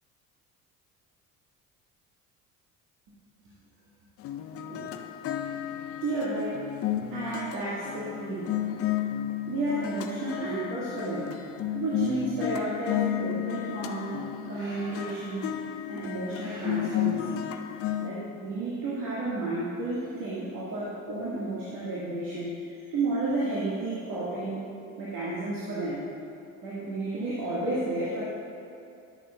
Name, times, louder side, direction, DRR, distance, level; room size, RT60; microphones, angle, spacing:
sound 1, 4.2-18.1, left 11 dB, 30° left, 0.5 m, -33 dB
voice 1, 5.3-6.7 7.1-8.6 9.5-11.4 11.7-15.5 15.9-17.5 18.0-22.6 22.9-24.7 25.0-26.0 26.6-28.2, right 2 dB, 45° right, -8 dB, 1.8 m, -32 dB
13.5 x 6.9 x 2.3 m, 2.6 s
figure-of-eight pair, 60°, 45 cm